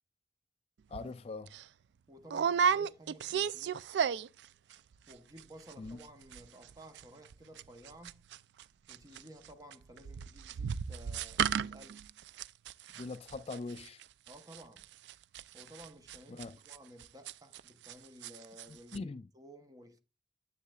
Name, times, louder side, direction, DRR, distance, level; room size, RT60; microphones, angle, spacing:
voice 1, 0.9-1.5 5.8-6.0 12.9-14.0 16.3-16.6 18.7-19.3, left 3 dB, 35° left, 0.3 m, -42 dB
sound 1, 0.9-1.1 1.5-1.6 2.3-4.5 4.7-5.1 5.4-5.5 5.7-6.1 6.3-17.9 18.2-18.7 18.9-19.0, right 7 dB, 70° right, 0.3 m, -34 dB
voice 2, 2.1-3.8 5.1-8.3 8.9-12.1 14.3-14.9 15.5-20.0, right 1 dB, 20° right, 0.9 m, -54 dB
9.5 x 7.5 x 2.3 m
head